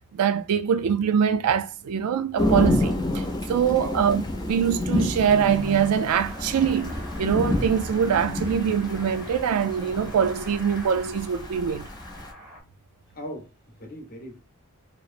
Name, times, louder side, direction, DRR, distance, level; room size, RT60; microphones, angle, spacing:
voice 1, 0.1-11.9, right 7 dB, 85° right, 0.3 m, -23 dB
Thunder / Rain, 2.4-12.3, left 1 dB, 20° left, 0.4 m, -29 dB
Car passing by / Accelerating revving vroom, 5.2-12.6, equal, 15° right, 0.9 m, -41 dB
voice 2, 13.1-14.4, equal, 40° left, 0.8 m, -38 dB
2.8 x 2.0 x 2.4 m
head